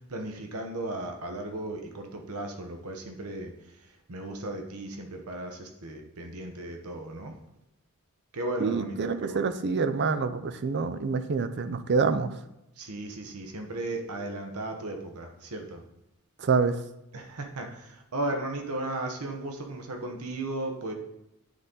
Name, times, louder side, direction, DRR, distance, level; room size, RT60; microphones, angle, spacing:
voice 1, 0.1-3.5 4.1-7.3 8.3-9.5 12.8-15.8 17.1-17.7 18.1-20.9, right 2 dB, 80° right, 3 dB, 1.0 m, -35 dB
voice 2, 8.6-12.3 16.4-16.8, right 4 dB, 50° right, 11 dB, 0.5 m, -26 dB
9.4 x 4.0 x 3.8 m, 0.88 s
head